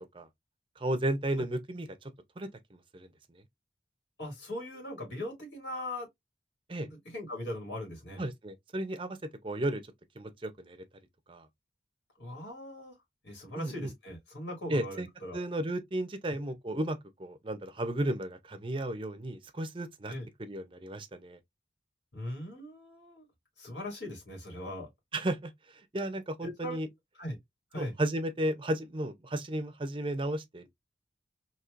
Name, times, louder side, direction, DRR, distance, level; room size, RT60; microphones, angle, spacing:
voice 1, 0.8-3.1 6.7-6.9 8.2-9.2 9.4-9.8 10.2-10.8 11.3-11.5 13.6-13.9 14.7-15.1 15.3-20.1 20.4-21.4 25.1-25.5 25.9-26.9 27.8-30.7, right 1 dB, 30° right, 0.6 m, -34 dB
voice 2, 4.2-6.1 6.8-8.2 12.2-13.0 13.2-15.4 16.3-16.4 20.1-20.2 22.1-23.2 23.6-24.9 26.4-26.8 27.2-27.4 27.7-27.9, left 1 dB, 75° left, 2.5 m, -40 dB
4.5 x 2.9 x 2.5 m
head